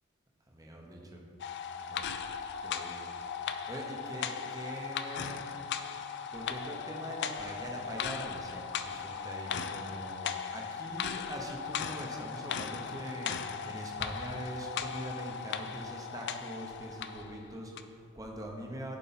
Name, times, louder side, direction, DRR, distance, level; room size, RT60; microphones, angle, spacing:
voice 1, 0.5-1.2 1.5-2.0 2.6-3.1 3.4-5.4 6.3-13.4 13.6-19.0, right 1 dB, 15° right, 0 dB, 1.0 m, -43 dB
sound 1, 1.4-17.3 17.8-17.9, left 7 dB, 55° left, 0.4 m, -38 dB
11.0 x 4.5 x 4.3 m, 2.9 s
head